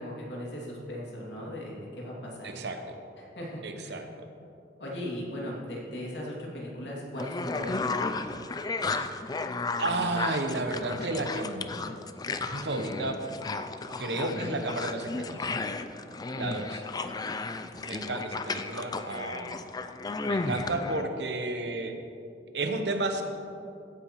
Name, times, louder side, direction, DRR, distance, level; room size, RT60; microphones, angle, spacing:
voice 1, 0.0-2.6 3.2-4.0 4.8-7.9 16.3-16.9, equal, 80° left, -4 dB, 2.6 m, -38 dB
voice 2, 2.4-3.0 3.6-4.0 8.8-9.1 9.8-11.9 12.4-13.2 14.0-15.5 16.3-16.8 17.8-19.5 20.2-21.9 22.5-23.2, right 2 dB, 70° right, 6 dB, 0.9 m, -32 dB
sound 1, 7.2-21.0, left 3 dB, 25° left, 0.4 m, -34 dB
15.0 x 9.3 x 3.1 m, 2.7 s
head